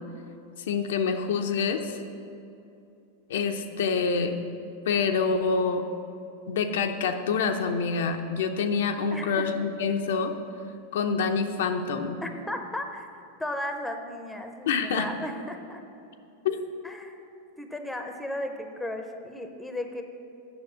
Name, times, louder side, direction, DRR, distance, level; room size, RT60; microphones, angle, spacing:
voice 1, 0.7-2.0 3.3-4.4 4.9-5.8 6.5-10.3 10.9-12.2 14.7-15.1 16.4-16.6, left 5 dB, 80° left, 5 dB, 0.7 m, -26 dB
voice 2, 9.1-9.5 12.2-13.1 13.4-15.8 16.8-17.2 17.6-20.0, left 1 dB, 5° left, 5 dB, 0.8 m, -35 dB
7.1 x 5.8 x 7.6 m, 2.7 s
supercardioid pair, 130°, 0 cm